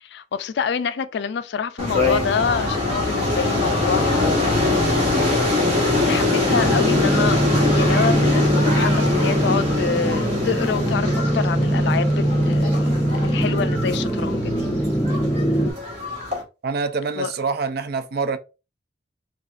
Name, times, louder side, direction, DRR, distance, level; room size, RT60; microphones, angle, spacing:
voice 1, 0.0-14.7 17.2-17.3, left 6 dB, 65° left, 0.4 m, -27 dB
sound 1, 1.8-16.4, left 2 dB, 35° right, 1.3 m, -23 dB
sound 2, 6.5-15.7, right 1 dB, ahead, 0.4 m, -22 dB
voice 2, 16.6-18.4, right 4 dB, 55° right, 0.4 m, -25 dB
4.8 x 2.3 x 2.4 m
head